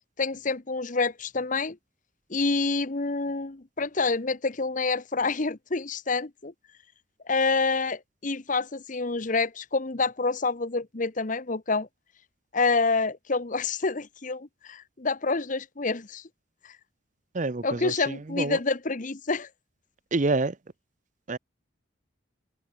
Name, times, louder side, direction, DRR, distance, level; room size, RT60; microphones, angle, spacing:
voice 1, 0.2-1.8 2.3-6.5 7.3-11.9 12.5-16.2 17.6-19.5, left 3 dB, 40° left, 1.0 m, -27 dB
voice 2, 17.3-18.6 20.1-20.6 21.3-21.4, right 3 dB, 40° right, 0.7 m, -27 dB
head